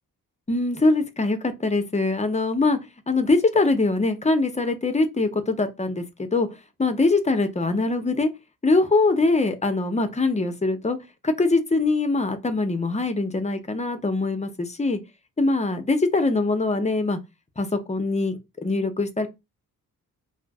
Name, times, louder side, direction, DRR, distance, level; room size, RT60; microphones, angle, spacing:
voice 1, 0.5-2.8 3.1-6.5 6.8-8.3 8.6-11.0 11.2-15.0 15.4-17.2 17.6-19.3, left 3 dB, 20° left, 0.6 m, -23 dB
2.4 x 2.0 x 3.4 m
cardioid pair, 60°, 36 cm